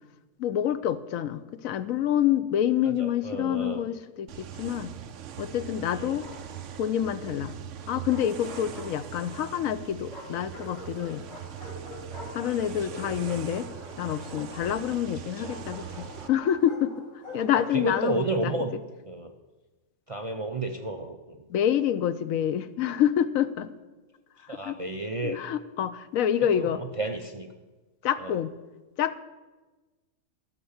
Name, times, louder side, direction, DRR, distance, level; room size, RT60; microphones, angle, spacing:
voice 1, 0.4-4.9 5.4-6.3 6.8-7.5 7.9-11.2 12.3-13.7 14.0-17.0 17.3-18.5 21.5-23.7 24.5-24.8 25.2-26.8 28.0-28.5 29.0-29.2, left 10 dB, 75° left, 13 dB, 1.0 m, -27 dB
voice 2, 3.0-3.8 5.9-6.3 12.9-13.0 15.4-15.5 17.5-18.7 19.1-19.3 20.1-21.4 24.5-25.4 26.4-27.5 28.2-28.3, right 2 dB, 40° right, 4 dB, 0.5 m, -32 dB
sound 1, 4.3-16.3, right 9 dB, 65° right, 1.0 m, -41 dB
Bark, 6.0-6.9 7.8-9.4 10.1-18.2, left 1 dB, 50° left, 3.3 m, -45 dB
13.5 x 6.6 x 7.2 m, 1.2 s
omnidirectional pair, 1.5 m